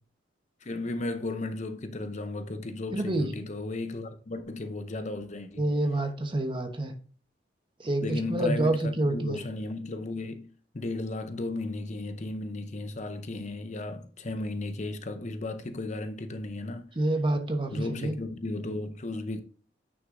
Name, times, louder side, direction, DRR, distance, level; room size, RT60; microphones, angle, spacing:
voice 1, 0.6-5.7 8.0-10.5 10.7-16.9 17.7-19.4, left 2 dB, 40° left, 0.7 m, -35 dB
voice 2, 2.9-3.3 5.6-6.9 7.8-9.4 17.0-18.1, right 1 dB, 25° right, 1.0 m, -27 dB
9.4 x 6.1 x 2.6 m
head